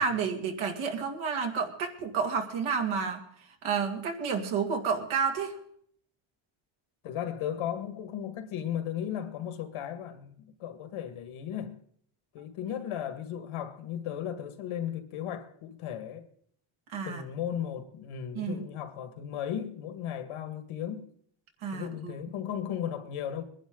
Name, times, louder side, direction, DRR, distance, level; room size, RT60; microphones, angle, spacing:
voice 1, 0.0-3.2 3.6-5.5 16.9-17.2 18.3-18.7 21.6-22.1, right 6 dB, 70° right, 2.4 m, -30 dB
voice 2, 7.0-11.8 12.3-16.3 17.0-21.1 21.7-23.4, left 9 dB, 85° left, 1.9 m, -36 dB
22.0 x 11.0 x 3.9 m
cardioid pair, 140°, 50 cm